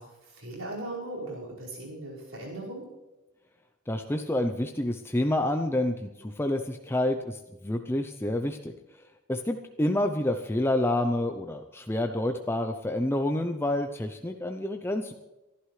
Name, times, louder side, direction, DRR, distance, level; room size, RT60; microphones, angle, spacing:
voice 1, 0.0-2.9, right 1 dB, 65° right, -4 dB, 5.3 m, -38 dB
voice 2, 3.9-8.7 9.3-15.1, left 1 dB, 10° left, 5 dB, 0.6 m, -28 dB
25.0 x 11.5 x 3.3 m, 1.0 s
head